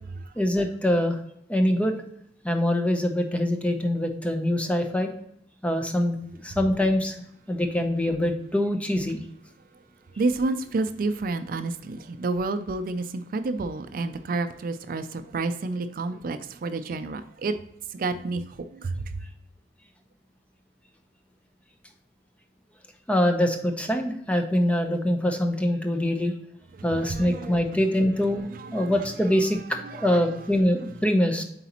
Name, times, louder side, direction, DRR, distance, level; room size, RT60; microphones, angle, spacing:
voice 1, 0.4-1.1 1.5-2.0 2.4-5.1 5.6-6.2 6.4-7.1 7.5-9.2 23.1-26.3 26.8-28.5 28.7-29.6 29.9-31.4, left 1 dB, 5° left, 0.6 m, -24 dB
voice 2, 10.2-17.6 17.9-19.2 26.7-27.6 28.5-29.3 29.7-30.3, right 3 dB, 50° right, 0.4 m, -30 dB
7.8 x 4.1 x 2.9 m
head